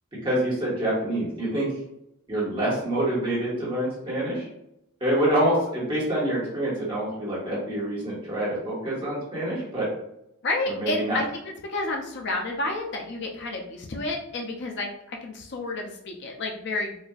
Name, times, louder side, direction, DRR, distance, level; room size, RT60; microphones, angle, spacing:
voice 1, 0.2-1.7 2.3-4.5 5.0-9.9 10.7-11.2, right 1 dB, 25° right, -7 dB, 1.4 m, -26 dB
voice 2, 10.4-11.2 11.7-17.0, left 2 dB, 50° left, 1 dB, 0.5 m, -30 dB
4.2 x 2.5 x 2.3 m, 0.82 s
head